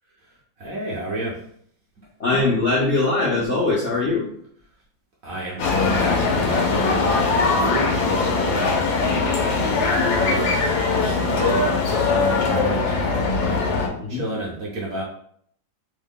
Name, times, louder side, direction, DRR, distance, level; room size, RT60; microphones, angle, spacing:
voice 1, 0.6-1.5 2.0-2.1 5.2-5.6 6.0-9.1 9.4-9.8 10.1-13.3 14.1-15.0, right 1 dB, 65° right, -4 dB, 0.9 m, -30 dB
voice 2, 2.2-4.2 14.0-14.2, left 3 dB, 65° left, -6 dB, 0.7 m, -21 dB
sound 1, 5.6-13.9, left 4 dB, 85° left, 1.4 m, -21 dB
3.3 x 2.1 x 3.5 m, 0.65 s
omnidirectional pair, 2.0 m